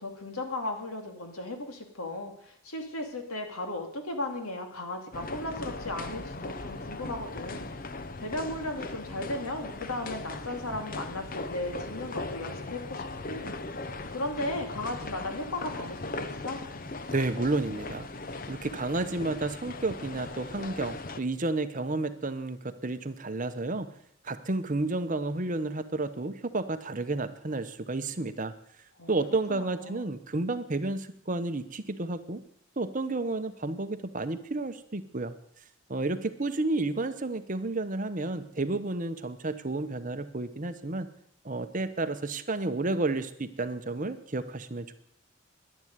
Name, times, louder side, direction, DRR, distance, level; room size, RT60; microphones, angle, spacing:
voice 1, 0.0-7.7 8.2-13.5 14.1-16.6 29.0-29.1 29.5-30.1, left 1 dB, 90° left, 4 dB, 2.6 m, -36 dB
sound 1, 5.1-21.2, left 3 dB, 40° left, 0.8 m, -39 dB
voice 2, 17.1-18.1 18.5-23.9 24.2-28.5 29.1-32.4 32.8-35.3 35.9-41.1 41.4-44.9, right 2 dB, 35° right, 10 dB, 0.9 m, -31 dB
11.0 x 10.5 x 9.4 m, 0.71 s
head